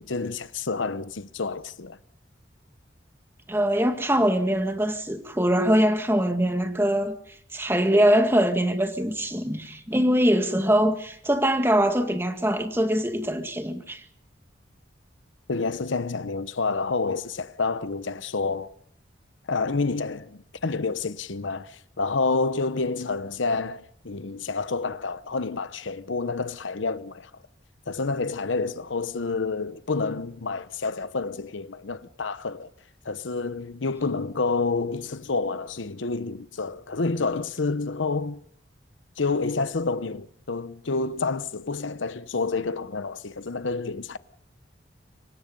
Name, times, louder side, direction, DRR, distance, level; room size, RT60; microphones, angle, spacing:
voice 1, 0.0-2.0 15.5-18.7 19.5-27.3 27.9-32.7 33.0-38.4 39.2-44.2, left 4 dB, 90° left, 0.9 m, -28 dB
voice 2, 3.5-7.2 7.5-14.0, equal, 10° right, 2.0 m, -23 dB
26.0 x 23.5 x 5.4 m
head